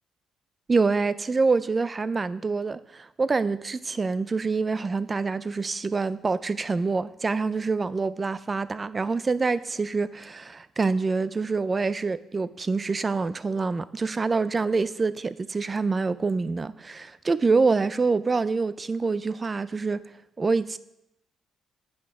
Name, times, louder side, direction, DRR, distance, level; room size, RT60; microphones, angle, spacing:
voice 1, 0.7-20.1 20.4-20.8, right 4 dB, 30° right, 0.4 m, -26 dB
8.5 x 5.9 x 4.8 m
cardioid pair, 90°, 0 cm